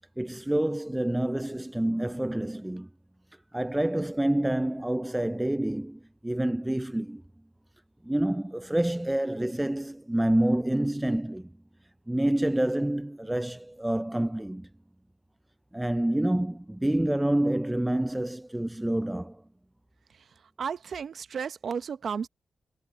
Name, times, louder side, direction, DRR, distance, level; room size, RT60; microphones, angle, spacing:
voice 1, 0.2-2.9 3.5-7.2 8.0-11.5 12.1-14.7 15.7-19.4, right 1 dB, 10° right, 0.4 m, -27 dB
voice 2, 20.6-22.3, right 6 dB, 70° right, 0.8 m, -33 dB
cardioid pair, 70°, 0 cm